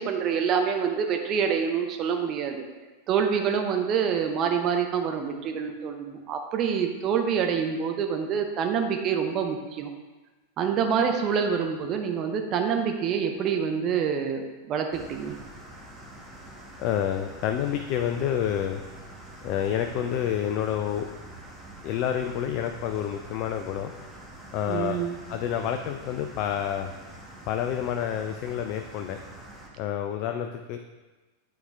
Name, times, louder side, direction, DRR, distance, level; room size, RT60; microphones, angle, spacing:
voice 1, 0.0-2.6 3.1-9.9 10.6-15.4 24.7-25.2, right 7 dB, 35° right, 4 dB, 0.7 m, -26 dB
sound 1, 14.9-29.7, right 1 dB, ahead, 1.2 m, -45 dB
voice 2, 16.8-18.8 19.4-21.1 21.8-23.9 24.5-26.9 27.5-29.2 29.8-30.8, left 9 dB, 40° left, 6 dB, 0.4 m, -28 dB
9.2 x 4.3 x 3.3 m, 1.2 s
figure-of-eight pair, 90°, 0 cm